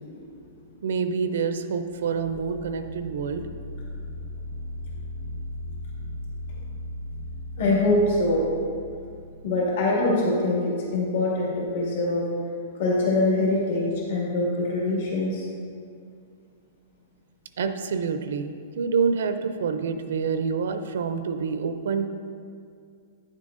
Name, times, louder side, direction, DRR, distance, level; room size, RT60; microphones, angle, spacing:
voice 1, 0.0-0.4 7.6-8.4 9.4-12.2 12.7-15.5, left 2 dB, 65° left, -5 dB, 2.0 m, -24 dB
voice 2, 0.8-3.5 17.6-22.1, right 5 dB, 75° right, 9 dB, 0.4 m, -27 dB
sound 1, 1.9-9.7, left 1 dB, 80° left, 1.6 m, -37 dB
9.6 x 7.4 x 2.5 m, 2.3 s
supercardioid pair, 165°, 0 cm